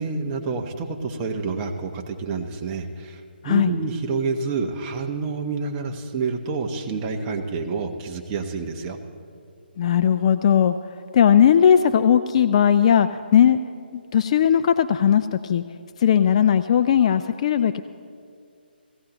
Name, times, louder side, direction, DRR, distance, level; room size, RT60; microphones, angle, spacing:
voice 1, 0.0-9.0, right 4 dB, 20° right, 3 dB, 1.0 m, -28 dB
voice 2, 9.8-10.7 11.1-13.6 13.9-15.6 16.0-17.8, left 9 dB, 35° left, 10 dB, 0.3 m, -18 dB
18.0 x 16.0 x 3.0 m, 2.3 s
figure-of-eight pair, 150°, 6 cm